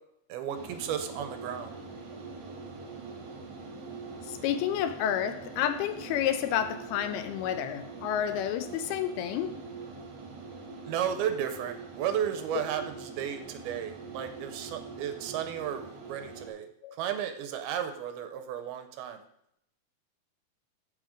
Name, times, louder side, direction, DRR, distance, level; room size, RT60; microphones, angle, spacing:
voice 1, 0.3-1.7 10.9-16.7 17.0-19.2, right 9 dB, 80° right, 2.4 m, -34 dB
sound 1, 0.5-16.5, right 4 dB, 55° right, 1.9 m, -44 dB
voice 2, 4.3-9.6 16.8-16.9, left 10 dB, 80° left, 2.4 m, -30 dB
8.3 x 7.2 x 5.0 m
omnidirectional pair, 4.7 m